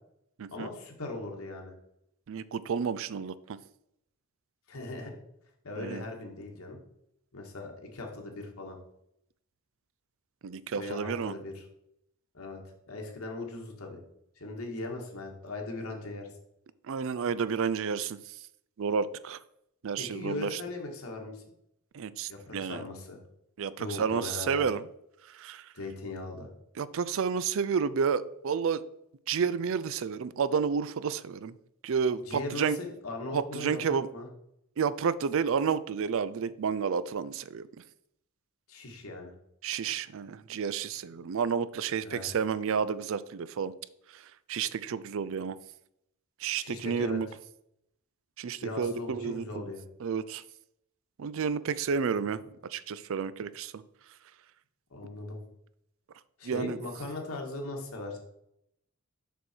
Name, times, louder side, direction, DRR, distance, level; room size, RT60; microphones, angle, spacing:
voice 1, 0.5-1.7 4.7-5.1 5.6-6.8 7.3-8.8 10.8-11.6 12.3-12.6 12.9-14.0 14.4-16.3 20.0-21.4 22.3-23.2 23.8-24.7 25.7-26.5 32.2-34.3 38.7-39.3 42.0-42.3 46.6-47.2 48.6-49.8 52.1-52.4 54.9-55.4 56.4-58.2, left 2 dB, 75° left, 1 dB, 1.8 m, -39 dB
voice 2, 2.3-3.6 5.8-6.0 10.4-11.3 16.9-18.2 18.8-19.4 19.8-20.6 21.9-22.8 23.6-24.8 25.3-25.6 26.8-28.8 29.3-31.5 31.8-32.8 33.3-34.1 34.8-37.7 39.6-43.7 44.5-45.6 46.4-47.3 48.4-49.6 50.0-50.4 51.2-52.4 52.7-53.8 56.4-56.8, right 6 dB, 60° right, 16 dB, 0.4 m, -30 dB
6.8 x 6.4 x 4.5 m, 0.78 s
head